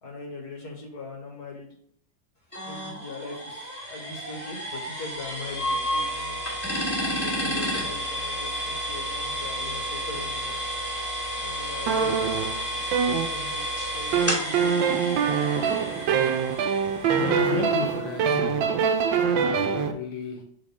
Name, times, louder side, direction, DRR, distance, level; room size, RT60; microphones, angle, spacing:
voice 1, 0.0-1.8 2.6-6.4 7.0-10.6 11.4-14.7, left 3 dB, 55° left, 2.0 m, -41 dB
sound 1, 2.5-18.2, equal, 5° left, 2.3 m, -31 dB
sound 2, 11.9-13.7 14.1-19.9, right 6 dB, 90° right, 1.4 m, -24 dB
voice 2, 17.2-18.8 19.4-20.4, left 6 dB, 85° left, 1.4 m, -34 dB
7.4 x 3.7 x 3.6 m
omnidirectional pair, 2.0 m